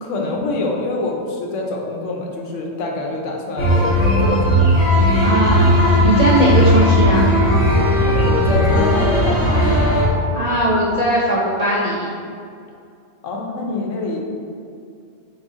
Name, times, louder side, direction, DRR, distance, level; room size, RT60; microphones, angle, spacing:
voice 1, 0.0-4.8 8.0-10.0 13.2-14.2, left 2 dB, 85° left, 0 dB, 1.0 m, -25 dB
sound 1, 3.6-10.1, equal, 65° left, 1.3 m, -16 dB
voice 2, 5.2-5.7 6.0-7.2 10.3-12.1, right 1 dB, 60° right, -6 dB, 0.4 m, -18 dB
3.9 x 3.0 x 3.6 m, 2.4 s
omnidirectional pair, 1.2 m